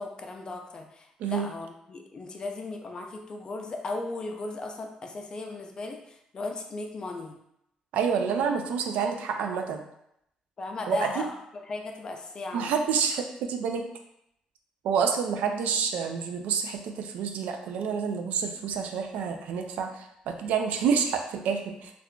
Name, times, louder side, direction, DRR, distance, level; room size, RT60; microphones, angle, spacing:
voice 1, 0.0-7.4 10.6-11.3 11.7-12.7, left 2 dB, 35° left, 3 dB, 0.4 m, -36 dB
voice 2, 7.9-9.8 10.9-11.3 12.5-13.8 14.8-21.9, right 6 dB, 85° right, 5 dB, 0.3 m, -28 dB
3.6 x 2.4 x 2.2 m, 0.78 s
cardioid pair, 130°, 2 cm